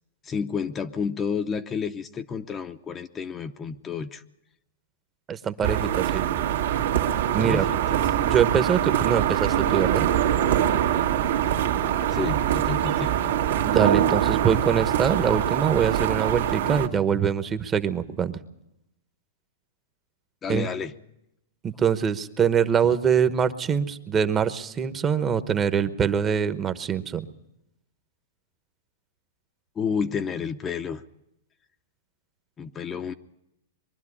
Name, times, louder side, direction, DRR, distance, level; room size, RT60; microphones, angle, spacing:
voice 1, 0.2-4.2 7.4-8.0 12.1-13.1 20.4-20.9 29.8-31.0 32.6-33.1, left 6 dB, 20° left, 7 dB, 0.7 m, -30 dB
voice 2, 5.3-6.2 7.3-7.7 8.2-10.1 13.6-18.4 20.5-20.7 21.6-27.3, right 7 dB, 20° right, 11 dB, 1.0 m, -24 dB
sound 1, 5.6-16.9, right 10 dB, 75° right, 1.8 m, -23 dB
23.0 x 11.5 x 9.8 m, 0.85 s
hypercardioid pair, 145°, 0 cm